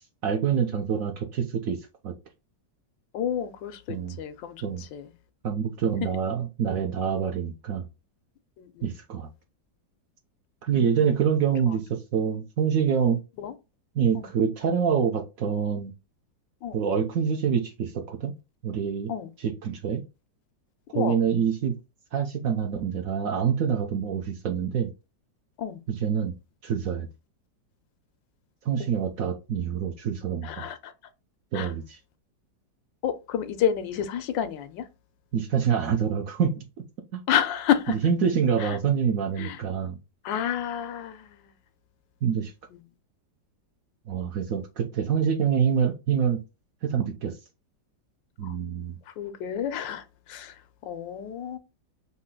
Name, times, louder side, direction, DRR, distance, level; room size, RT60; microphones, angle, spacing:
voice 1, 0.2-2.1 3.9-4.2 4.6-4.8 5.4-7.8 8.8-9.3 10.6-13.2 13.9-15.9 16.7-18.3 18.6-19.1 19.4-20.0 20.9-21.7 22.1-24.9 25.9-26.3 26.6-27.1 28.6-30.7 31.5-31.8 35.3-36.5 37.1-37.2 38.0-40.0 42.2-42.5 44.1-46.4 46.8-47.3 48.4-48.9, right 7 dB, 65° right, 0.9 m, -26 dB
voice 2, 3.1-5.1 6.0-6.1 8.6-8.9 10.7-11.0 11.7-11.8 13.4-13.5 14.1-14.3 16.6-16.8 19.1-19.3 20.9-21.4 25.6-25.8 30.4-30.9 31.5-31.7 33.0-34.9 37.3-38.0 38.6-38.8 39.4-39.6 40.2-41.5 42.7-42.8 48.4-48.6 49.1-51.6, left 9 dB, 90° left, 1.4 m, -30 dB
4.2 x 2.8 x 3.7 m
omnidirectional pair, 1.9 m